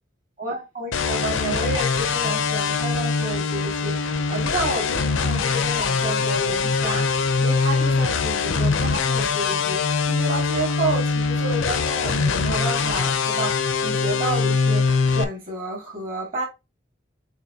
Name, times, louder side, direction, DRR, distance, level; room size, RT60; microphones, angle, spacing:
voice 1, 0.4-16.5, right 2 dB, 45° right, 2.4 m, -30 dB
sound 1, 0.9-15.2, left 4 dB, 80° left, 0.5 m, -23 dB
6.3 x 3.0 x 2.8 m
head